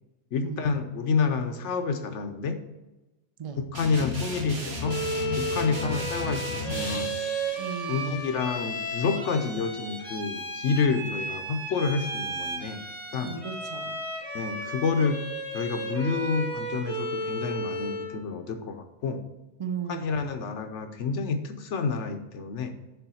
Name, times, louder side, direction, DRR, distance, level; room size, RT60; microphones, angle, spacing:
voice 1, 0.3-2.6 3.6-5.0 5.3-7.2 7.9-12.8 13.1-13.4 14.3-15.2 15.5-19.2 19.9-22.7, left 5 dB, 70° left, 7 dB, 1.0 m, -29 dB
sound 1, 3.7-7.0, left 2 dB, 55° right, 1.7 m, -33 dB
Bowed string instrument, 4.8-18.2, right 1 dB, 90° right, 3.2 m, -34 dB
sound 2, 6.7-10.2, left 3 dB, 30° left, 0.6 m, -44 dB
voice 2, 7.6-8.4 13.2-14.0 19.6-20.4, right 6 dB, 40° right, 7 dB, 0.5 m, -36 dB
6.9 x 3.6 x 5.5 m, 1.1 s
omnidirectional pair, 1.3 m